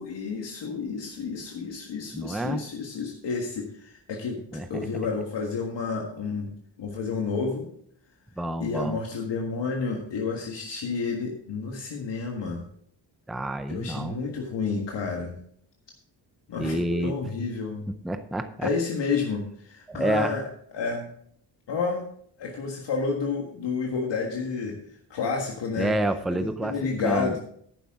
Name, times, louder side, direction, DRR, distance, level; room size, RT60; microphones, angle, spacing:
voice 1, 0.0-4.4 4.7-6.5 6.8-7.7 8.6-12.6 13.7-15.4 16.5-17.9 18.6-20.4 20.7-21.1 21.7-22.0 22.4-24.8 25.1-25.9 26.3-27.4, left 4 dB, 70° left, 0 dB, 1.7 m, -30 dB
voice 2, 2.1-2.6 4.5-4.7 8.4-9.0 13.3-14.2 16.6-17.2 18.0-18.7 19.9-20.3 25.8-26.7 27.0-27.4, right 1 dB, ahead, 9 dB, 0.5 m, -28 dB
11.5 x 9.4 x 3.7 m, 0.63 s
wide cardioid pair, 165°, 44 cm